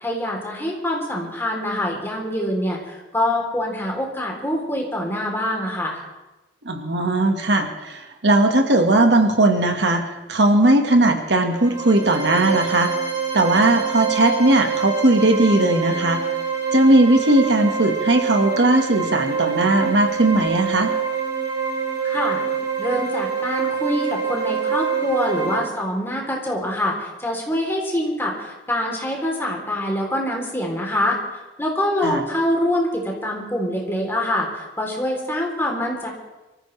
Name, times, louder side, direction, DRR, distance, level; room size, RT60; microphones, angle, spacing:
voice 1, 0.0-6.0 22.0-22.4 22.8-36.1, left 1 dB, 15° left, -1 dB, 3.4 m, -25 dB
voice 2, 6.6-10.0 10.3-12.9 13.3-16.2 16.7-20.9 32.0-32.2, right 2 dB, 65° right, 4 dB, 1.6 m, -18 dB
sound 1, 11.5-25.6, right 6 dB, 20° right, 4.8 m, -25 dB
24.5 x 14.5 x 3.3 m, 1.1 s
head